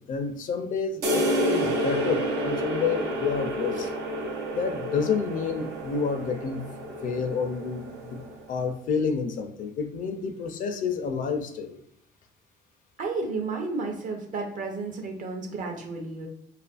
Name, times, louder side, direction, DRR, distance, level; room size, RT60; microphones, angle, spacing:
voice 1, 0.1-3.9 4.5-6.6 7.0-7.8 8.1-8.2 8.5-11.8, left 5 dB, 50° left, 7 dB, 0.4 m, -29 dB
sound 1, 1.0-8.6, equal, 85° right, 0.7 m, -30 dB
voice 2, 13.0-16.3, right 3 dB, 50° right, 2 dB, 0.7 m, -32 dB
2.6 x 2.4 x 2.4 m, 0.74 s
cardioid pair, 110°, 17 cm